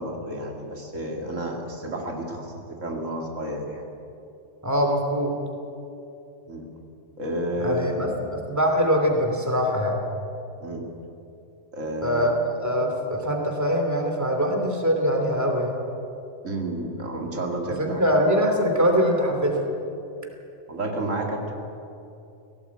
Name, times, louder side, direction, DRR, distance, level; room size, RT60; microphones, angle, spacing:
voice 1, 0.0-2.5 2.8-3.8 6.5-6.7 7.2-8.0 10.6-10.9 11.7-12.3 16.4-18.0 20.7-21.5, right 1 dB, 90° right, 1 dB, 2.7 m, -30 dB
voice 2, 4.6-5.3 7.6-10.0 12.0-12.3 12.6-15.7 17.8-19.6, equal, 15° right, 2 dB, 2.8 m, -23 dB
18.0 x 17.0 x 8.6 m, 2.7 s
omnidirectional pair, 1.3 m